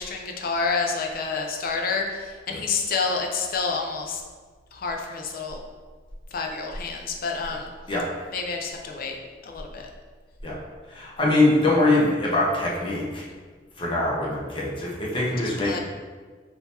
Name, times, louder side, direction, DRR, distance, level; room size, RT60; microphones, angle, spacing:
voice 1, 0.0-4.2 4.7-5.6 6.3-7.7 8.3-9.2 9.4-9.9 15.6-15.8, left 4 dB, 50° left, 2 dB, 0.5 m, -28 dB
voice 2, 10.9-13.3 13.8-15.8, left 2 dB, 30° left, -4 dB, 0.9 m, -23 dB
3.8 x 2.8 x 4.2 m, 1.5 s
head